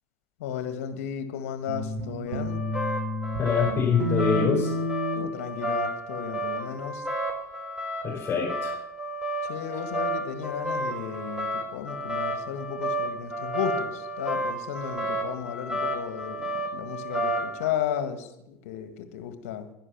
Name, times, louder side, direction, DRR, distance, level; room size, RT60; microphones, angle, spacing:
voice 1, 0.4-2.6 5.2-7.0 9.5-19.7, left 9 dB, 70° left, 9 dB, 1.7 m, -34 dB
sound 1, 1.7-3.4 3.7-5.3, left 1 dB, 80° right, 1.4 m, -29 dB
sound 2, 2.3-17.6, right 1 dB, 10° right, 5.0 m, -32 dB
voice 2, 3.4-4.7 8.0-8.7, left 6 dB, 30° left, -4 dB, 4.8 m, -25 dB
11.5 x 11.0 x 6.0 m, 0.83 s
hypercardioid pair, 80°, 8 cm